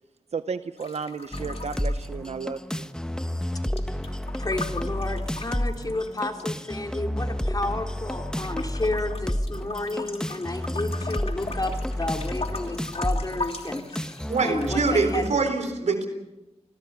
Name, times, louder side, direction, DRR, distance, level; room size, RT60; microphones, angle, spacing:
voice 1, 0.3-2.9, right 5 dB, 70° right, 11 dB, 0.8 m, -33 dB
sound 1, 0.8-2.8 3.1-6.4 7.1-8.0 8.4-15.3, left 3 dB, 60° left, 3.0 m, -40 dB
sound 2, 1.3-15.3, equal, 5° left, 1.3 m, -31 dB
voice 2, 4.4-15.4, left 2 dB, 35° left, 3 dB, 3.6 m, -31 dB
voice 3, 14.3-16.1, right 4 dB, 90° right, 7 dB, 4.0 m, -24 dB
29.0 x 21.0 x 5.8 m, 1.0 s
wide cardioid pair, 65°, 11 cm